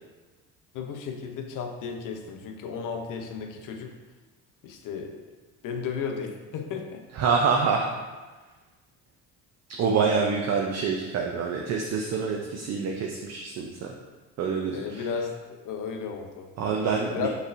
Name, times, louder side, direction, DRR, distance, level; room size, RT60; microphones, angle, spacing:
voice 1, 0.7-3.9 4.6-5.2 5.6-7.0 14.7-16.5 17.0-17.3, left 6 dB, 60° left, 4 dB, 0.7 m, -34 dB
voice 2, 7.1-7.9 9.8-13.9 14.4-15.1 16.6-17.3, right 5 dB, 45° right, 0 dB, 0.5 m, -26 dB
5.3 x 3.2 x 2.6 m, 1.3 s
supercardioid pair, 85°, 35 cm